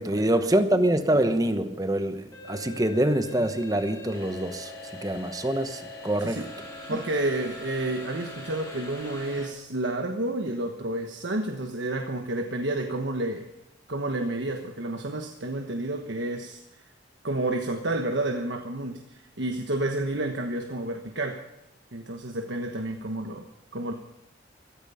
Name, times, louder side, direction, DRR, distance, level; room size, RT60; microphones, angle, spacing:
voice 1, 0.0-4.7 5.0-6.4, right 1 dB, 20° right, 9 dB, 1.0 m, -25 dB
sound 1, 2.3-9.5, left 1 dB, 20° left, 4.4 m, -42 dB
voice 2, 6.9-13.5 13.9-16.6 17.2-21.4 21.9-23.5 23.7-23.9, right 2 dB, 75° right, 4 dB, 1.2 m, -30 dB
15.5 x 14.0 x 5.6 m, 0.92 s
head